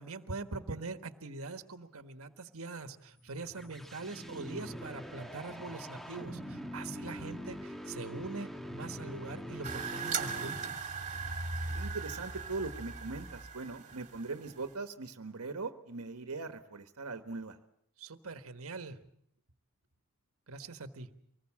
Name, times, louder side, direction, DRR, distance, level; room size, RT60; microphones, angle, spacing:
voice 1, 0.0-10.7 18.0-19.0 20.5-21.1, right 3 dB, 70° right, 8 dB, 1.5 m, -43 dB
sound 1, 3.1-10.9, equal, ahead, 1.2 m, -44 dB
sound 2, 9.6-14.7, right 5 dB, 35° right, 2.6 m, -38 dB
voice 2, 11.7-17.6, right 3 dB, 90° right, 8 dB, 1.3 m, -40 dB
25.0 x 20.0 x 7.4 m, 0.71 s
head